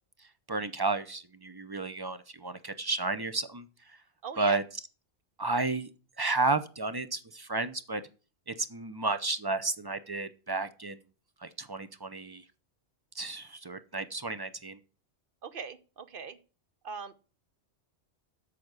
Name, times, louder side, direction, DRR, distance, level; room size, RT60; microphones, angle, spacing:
voice 1, 0.5-3.7 4.4-4.6 5.4-5.9 6.2-8.0 8.5-11.0 11.4-12.4 13.1-14.8, right 3 dB, 25° right, 12 dB, 0.5 m, -32 dB
voice 2, 4.2-4.6 15.4-16.4 16.8-17.2, right 5 dB, 55° right, 12 dB, 1.0 m, -40 dB
8.5 x 6.4 x 8.0 m, 0.36 s
omnidirectional pair, 1.2 m